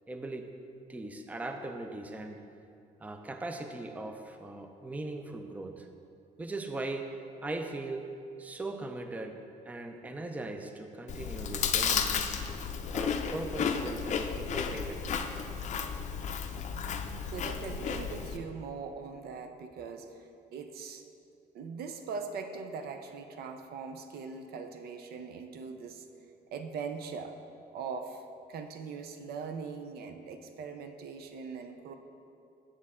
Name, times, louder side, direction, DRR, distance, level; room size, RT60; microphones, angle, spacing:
voice 1, 0.1-0.5 0.9-2.4 3.0-5.9 6.4-8.0 8.4-12.4 12.9-15.2, right 2 dB, 10° right, 5 dB, 0.4 m, -39 dB
Chewing mastication, 11.1-18.4, left 6 dB, 45° left, 0.5 m, -33 dB
voice 2, 17.3-21.1 21.5-26.0 26.5-27.4 27.7-28.2 28.5-31.9, right 5 dB, 65° right, 6 dB, 0.6 m, -41 dB
7.3 x 6.5 x 3.6 m, 2.6 s
cardioid pair, 110°, 17 cm